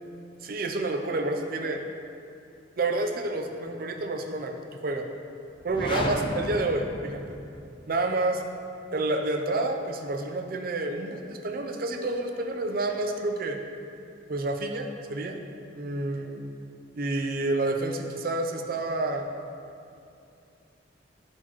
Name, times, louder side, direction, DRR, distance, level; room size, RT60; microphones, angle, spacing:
voice 1, 0.4-1.8 2.8-4.6 4.8-5.1 5.6-7.4 7.9-8.5 8.9-13.6 14.3-15.4 15.7-16.4 16.9-19.3, right 2 dB, 50° right, 4 dB, 0.6 m, -29 dB
sound 1, 5.6-7.7, left 1 dB, 25° left, 0.6 m, -33 dB
11.0 x 4.5 x 3.0 m, 2.6 s
head